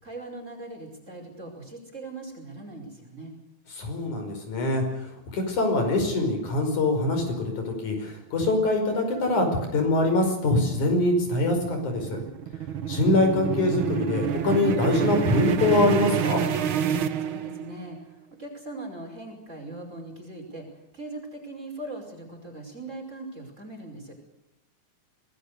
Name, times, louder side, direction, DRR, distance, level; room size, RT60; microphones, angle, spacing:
voice 1, 0.0-3.3 17.2-24.2, right 2 dB, 20° right, 2 dB, 5.5 m, -40 dB
voice 2, 3.8-9.5 9.7-12.2 12.9-16.4, left 2 dB, 55° left, 5 dB, 6.6 m, -24 dB
sound 1, 10.7-17.9, right 8 dB, 85° right, 1.1 m, -28 dB
26.0 x 19.5 x 6.7 m, 0.91 s
omnidirectional pair, 4.1 m